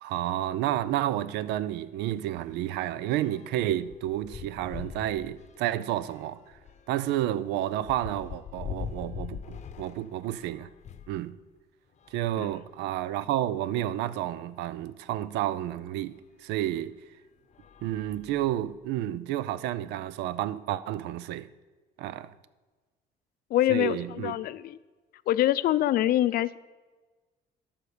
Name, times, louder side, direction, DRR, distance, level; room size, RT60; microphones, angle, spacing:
voice 1, 0.0-6.4 6.9-10.7 11.1-11.4 12.1-17.0 17.8-21.5 22.0-22.3 23.7-24.3, right 13 dB, 90° right, 0.5 m, -30 dB
sound 1, 0.7-0.9 1.3-1.4 1.7-11.2 11.9-13.3 14.0-14.1 14.3-14.4 16.1-16.2 16.8-17.0 17.5-18.8, left 7 dB, 45° left, 0.8 m, -44 dB
voice 2, 23.5-24.8 25.3-26.6, left 13 dB, 60° left, 0.5 m, -25 dB
12.5 x 5.1 x 6.7 m
cardioid pair, 110°, 17 cm